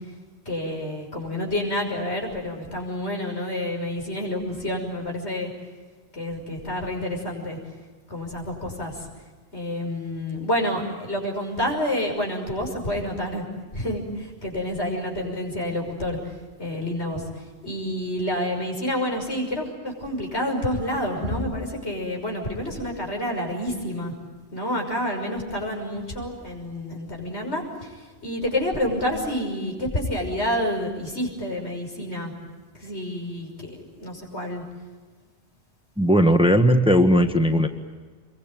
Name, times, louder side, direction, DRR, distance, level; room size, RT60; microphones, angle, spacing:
voice 1, 0.5-5.5 6.1-7.6 8.1-9.0 9.5-13.4 13.7-16.3 16.6-17.2 17.6-24.1 24.5-28.0 28.2-32.3 32.8-34.6, left 1 dB, 80° left, 1 dB, 6.5 m, -28 dB
voice 2, 36.0-37.7, equal, 5° right, 6 dB, 1.4 m, -17 dB
27.0 x 23.0 x 9.1 m, 1.4 s
omnidirectional pair, 1.1 m